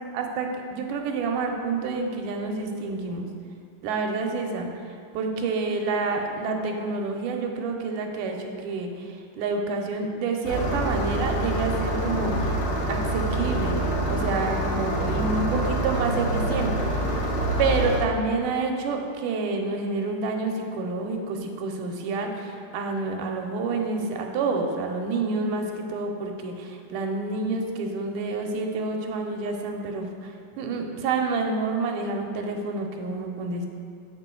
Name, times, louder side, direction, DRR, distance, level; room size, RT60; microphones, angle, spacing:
voice 1, 0.1-3.3 3.8-12.6 12.9-17.1 17.6-33.7, right 3 dB, 90° right, 2 dB, 2.2 m, -28 dB
Engine starting, 10.4-18.0, right 1 dB, 65° left, 2.2 m, -26 dB
7.4 x 5.2 x 3.7 m, 2.4 s
omnidirectional pair, 3.6 m